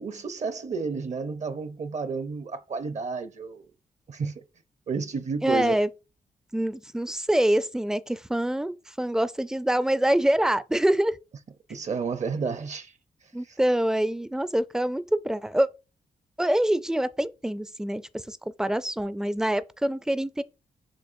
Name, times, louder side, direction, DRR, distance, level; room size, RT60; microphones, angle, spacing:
voice 1, 0.0-3.7 4.1-4.4 4.9-5.8 11.7-12.9 13.4-13.6, right 5 dB, 50° right, 0.6 m, -31 dB
voice 2, 5.4-5.9 6.5-11.2 13.3-15.7 16.4-20.4, right 1 dB, 5° right, 0.3 m, -25 dB
6.6 x 3.0 x 2.6 m
cardioid pair, 65°, 16 cm